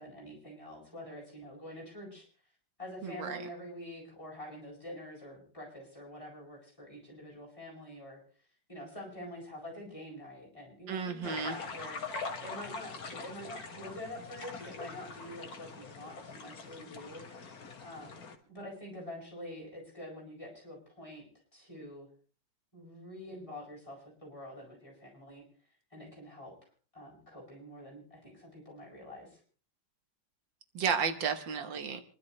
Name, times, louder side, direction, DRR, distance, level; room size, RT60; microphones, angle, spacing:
voice 1, 0.0-2.3 2.8-8.2 8.7-12.0 12.4-17.2 17.8-21.3 21.5-22.1 22.7-25.4 25.9-26.5 26.9-29.4, left 1 dB, 15° left, -5 dB, 8.2 m, -46 dB
voice 2, 3.0-3.4 10.9-11.6 30.7-32.0, right 6 dB, 85° right, 8 dB, 2.0 m, -33 dB
sound 1, 11.2-18.3, left 4 dB, 55° left, 2.2 m, -43 dB
27.0 x 12.0 x 3.3 m, 0.40 s
omnidirectional pair, 2.0 m